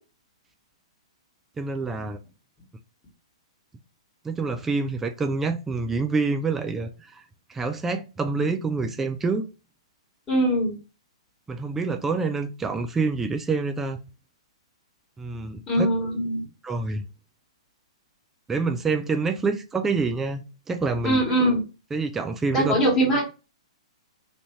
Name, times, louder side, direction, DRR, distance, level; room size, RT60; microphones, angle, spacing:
voice 1, 1.6-2.2 4.2-7.2 7.5-9.5 11.5-14.0 15.2-15.9 16.6-17.0 18.5-21.2 21.9-22.7, right 4 dB, 10° right, 0.3 m, -27 dB
voice 2, 10.3-10.8 15.7-16.4 21.0-21.6 22.5-23.2, right 1 dB, 15° left, 1.4 m, -22 dB
3.3 x 2.6 x 3.0 m
figure-of-eight pair, 115°, 3 cm